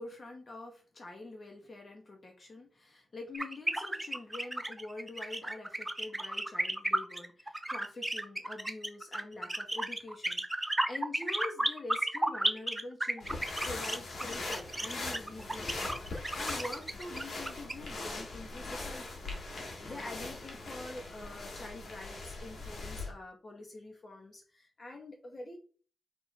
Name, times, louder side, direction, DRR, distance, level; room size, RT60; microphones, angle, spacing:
voice 1, 0.0-25.6, left 2 dB, 35° left, 2 dB, 1.8 m, -46 dB
sound 1, 3.3-17.7, right 1 dB, 10° right, 0.7 m, -33 dB
sound 2, 13.2-23.1, left 2 dB, 60° left, 2.1 m, -41 dB
5.3 x 4.2 x 4.5 m, 0.38 s
wide cardioid pair, 155°, 0 cm